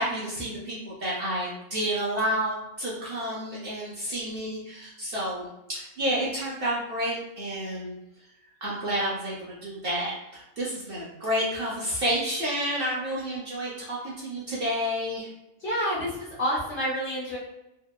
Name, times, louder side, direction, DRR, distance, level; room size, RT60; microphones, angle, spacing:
voice 1, 0.0-8.0 8.6-15.3, equal, 60° right, -5 dB, 0.6 m, -30 dB
voice 2, 15.6-16.1 16.4-17.4, equal, 55° left, -6 dB, 0.7 m, -28 dB
2.8 x 2.0 x 2.2 m, 0.92 s
omnidirectional pair, 1.4 m